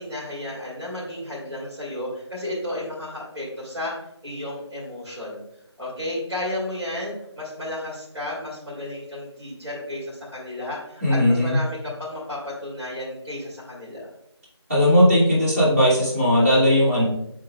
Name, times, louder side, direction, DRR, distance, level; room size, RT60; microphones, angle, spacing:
voice 1, 0.0-3.9 4.2-5.4 5.8-14.1, left 1 dB, 70° right, -7 dB, 2.4 m, -33 dB
voice 2, 11.0-11.6 14.7-17.0, equal, 30° right, -8 dB, 2.3 m, -18 dB
11.0 x 3.7 x 2.3 m, 0.80 s
figure-of-eight pair, 170°, 14 cm